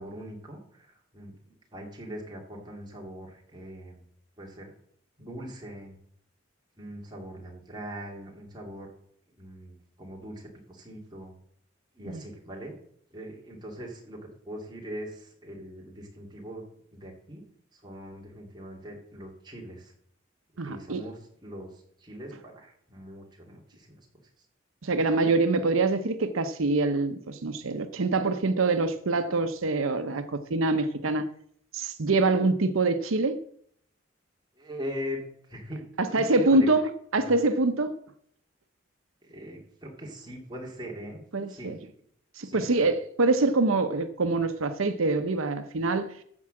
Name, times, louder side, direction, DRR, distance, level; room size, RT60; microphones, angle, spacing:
voice 1, 0.0-4.0 4.4-4.7 5.2-6.0 6.8-8.9 9.4-11.4 11.9-12.7 13.1-14.2 14.4-16.6 16.9-17.4 17.7-19.9 20.6-24.1 34.6-36.7 37.1-37.4 39.2-41.2 41.5-41.7 42.4-42.9, equal, 20° right, 2.5 m, -41 dB
voice 2, 20.6-21.1 24.8-31.3 31.7-33.4 36.0-37.9 41.3-41.8 42.4-46.1, right 3 dB, 90° right, 0.8 m, -25 dB
13.5 x 4.7 x 7.5 m
head